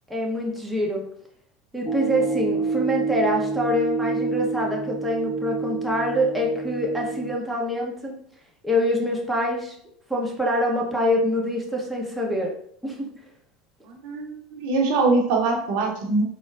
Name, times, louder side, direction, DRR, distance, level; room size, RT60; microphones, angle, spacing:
voice 1, 0.1-1.1 1.7-8.1 8.6-9.7 10.1-12.5 12.8-13.1, equal, 5° right, -2 dB, 0.8 m, -25 dB
sound 1, 1.9-7.4, right 4 dB, 25° left, 0.5 m, -28 dB
voice 2, 13.8-16.2, right 3 dB, 65° right, 0 dB, 0.7 m, -23 dB
3.9 x 2.1 x 2.5 m, 0.64 s
hypercardioid pair, 80°, 0 cm